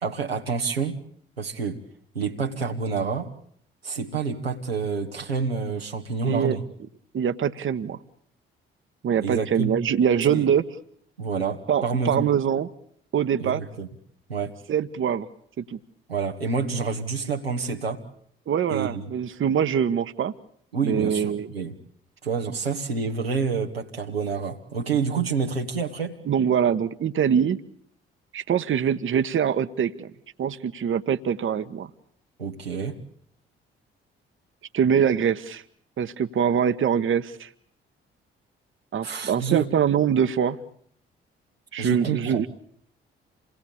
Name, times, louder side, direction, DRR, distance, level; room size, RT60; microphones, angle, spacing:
voice 1, 0.0-1.0 1.4-1.8 2.1-3.3 3.8-6.6 9.2-9.7 10.3-10.5 11.2-12.3 13.4-13.9 14.3-14.5 16.1-18.0 18.7-19.0 20.7-21.8 22.2-26.2 32.4-33.0 39.0-39.7 41.8-42.4, right 5 dB, 85° right, 1 dB, 1.5 m, -28 dB
voice 2, 6.2-6.6 7.1-8.0 9.0-10.6 11.7-12.7 13.1-13.6 14.7-15.3 15.6-15.8 18.5-20.3 20.8-21.5 26.3-27.6 28.3-30.1 30.4-31.9 34.7-35.6 36.0-37.5 38.9-40.6 41.7-42.5, right 8 dB, 45° right, 11 dB, 1.2 m, -23 dB
27.5 x 19.0 x 8.6 m, 0.66 s
figure-of-eight pair, 40°, 29 cm